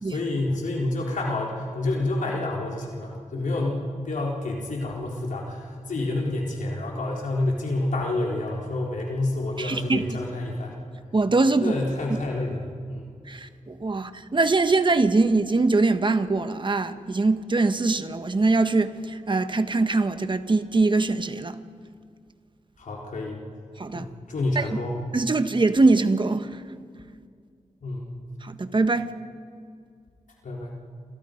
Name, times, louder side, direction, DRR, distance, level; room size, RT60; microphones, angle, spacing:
voice 1, 0.0-10.7 11.6-12.6 12.9-13.1 22.8-23.4 23.9-24.9 27.8-28.1 30.4-30.8, left 2 dB, 85° left, 3.9 m, -28 dB
voice 2, 9.6-10.2 11.1-11.7 13.2-21.6 23.8-24.1 24.5-24.8 25.1-26.6 28.4-29.1, right 3 dB, 40° right, 1.4 m, -23 dB
29.0 x 28.0 x 5.3 m
wide cardioid pair, 80°, 13 cm